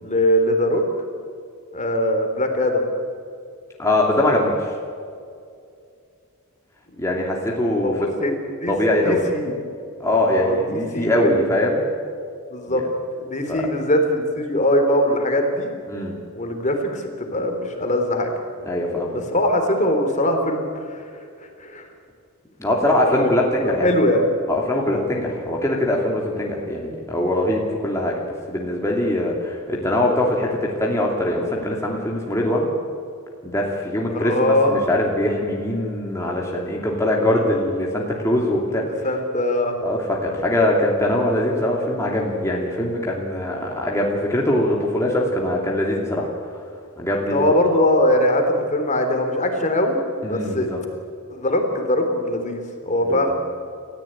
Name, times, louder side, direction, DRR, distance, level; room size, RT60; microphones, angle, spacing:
voice 1, 0.0-0.8 1.7-2.9 7.8-8.7 9.0-9.6 10.3-11.5 12.5-12.8 13.2-15.7 16.3-18.3 19.1-21.1 21.6-21.9 23.2-23.3 23.6-24.2 25.2-25.3 34.1-34.7 39.0-39.8 47.3-50.7 51.3-53.3, left 1 dB, 35° left, 4 dB, 3.5 m, -21 dB
voice 2, 3.8-4.6 7.0-7.9 8.7-9.2 10.0-11.8 12.7-12.8 13.5-13.6 15.9-16.2 18.7-19.1 22.6-23.9 24.5-28.1 28.5-32.7 33.4-38.8 39.8-46.3 47.0-47.4 50.2-50.8 53.0-53.3, left 1 dB, 15° left, -2 dB, 2.9 m, -22 dB
30.0 x 14.5 x 8.9 m, 2.4 s
head